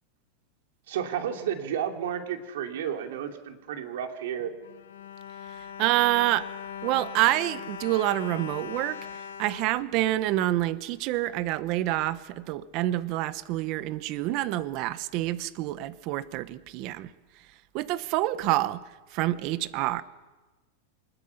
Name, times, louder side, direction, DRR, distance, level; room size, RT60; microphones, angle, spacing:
voice 1, 0.9-4.5, right 9 dB, 75° right, 2.8 m, -32 dB
Bowed string instrument, 4.4-10.6 11.3-11.4 11.7-11.9, left 8 dB, 90° left, 1.1 m, -41 dB
voice 2, 5.8-6.5 6.8-9.0 9.4-17.1 17.7-18.8 19.1-20.0, right 15 dB, 45° right, 1.0 m, -27 dB
25.0 x 20.5 x 5.8 m
supercardioid pair, 150°, 0 cm